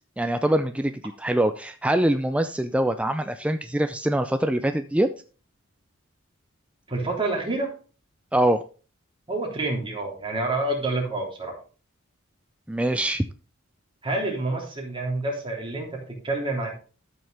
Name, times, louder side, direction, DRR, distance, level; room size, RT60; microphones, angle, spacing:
voice 1, 0.2-0.9 1.2-5.1 8.3-8.6 12.7-13.2, right 1 dB, 5° right, 9 dB, 0.4 m, -23 dB
voice 2, 6.9-7.7 9.3-11.5 14.0-16.7, right 2 dB, 25° right, -1 dB, 3.4 m, -28 dB
13.5 x 6.4 x 3.4 m, 0.36 s
head